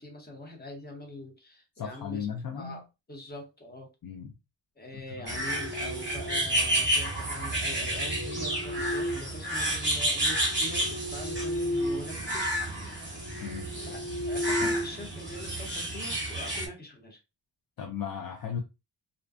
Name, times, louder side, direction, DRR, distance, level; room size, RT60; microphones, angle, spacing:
voice 1, 0.0-2.3 2.6-3.9 4.8-12.5 13.8-17.2, left 1 dB, 20° left, 0.9 m, -43 dB
voice 2, 1.8-2.8 4.0-4.3 5.3-5.4 13.4-13.7 14.6-14.7 17.8-18.6, left 7 dB, 55° left, 0.5 m, -36 dB
sound 1, 5.2-6.7 7.7-9.8 10.3-12.1 12.4-12.7 13.2-15.5, left 1 dB, 80° left, 1.3 m, -35 dB
sound 2, 5.3-16.7, right 1 dB, 25° right, 0.9 m, -31 dB
2.5 x 2.2 x 2.4 m
wide cardioid pair, 105°, 44 cm